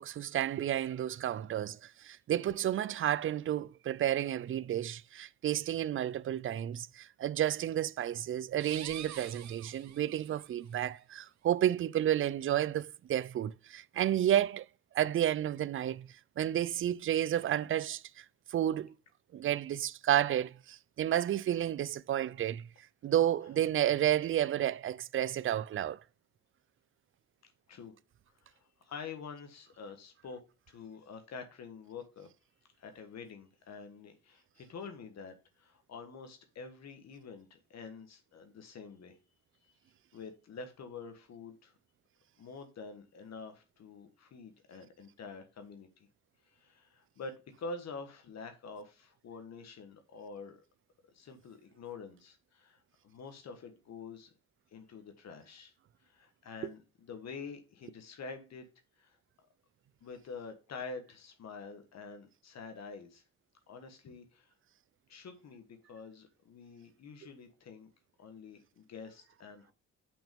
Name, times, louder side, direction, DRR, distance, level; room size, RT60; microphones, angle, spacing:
voice 1, 0.0-14.7 14.9-16.1 16.4-18.2 18.5-18.9 19.3-22.7 23.0-26.0 56.6-56.7, right 11 dB, 45° right, 0.4 m, -31 dB
sound 1, 8.5-10.5, right 10 dB, 65° right, 0.9 m, -46 dB
voice 2, 28.4-30.4 30.7-32.3 32.8-39.2 39.6-39.8 40.1-41.7 42.4-45.9 46.4-50.6 51.1-54.3 54.7-55.7 56.0-58.6 59.0-59.2 60.0-63.2 63.7-64.5 65.1-67.9 68.2-69.7, left 4 dB, 60° left, 1.5 m, -47 dB
6.0 x 5.3 x 5.2 m
cardioid pair, 90°, 30 cm